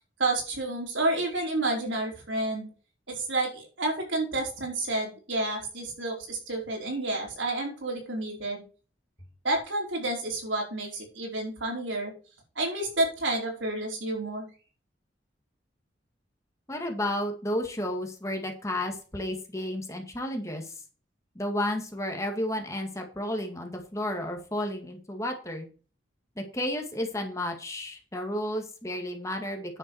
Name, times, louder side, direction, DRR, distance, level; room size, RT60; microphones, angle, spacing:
voice 1, 0.2-2.7 3.1-8.6 9.4-12.1 12.6-14.4, right 2 dB, 90° right, 1 dB, 4.5 m, -30 dB
voice 2, 16.7-20.7 21.4-25.7 26.4-29.8, left 1 dB, 15° left, 4 dB, 2.1 m, -32 dB
9.8 x 7.4 x 4.7 m, 0.37 s
head